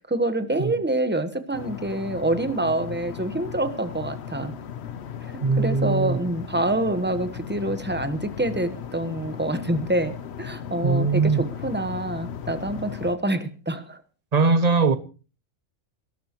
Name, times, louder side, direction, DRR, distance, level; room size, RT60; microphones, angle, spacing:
voice 1, 0.0-4.5 5.6-14.0, right 1 dB, 10° right, 1.0 m, -26 dB
sound 1, 1.5-13.2, left 8 dB, 60° left, 1.0 m, -37 dB
voice 2, 5.4-6.2 10.8-11.4 14.3-15.0, right 4 dB, 35° right, 0.9 m, -20 dB
22.0 x 12.5 x 3.0 m
omnidirectional pair, 1.4 m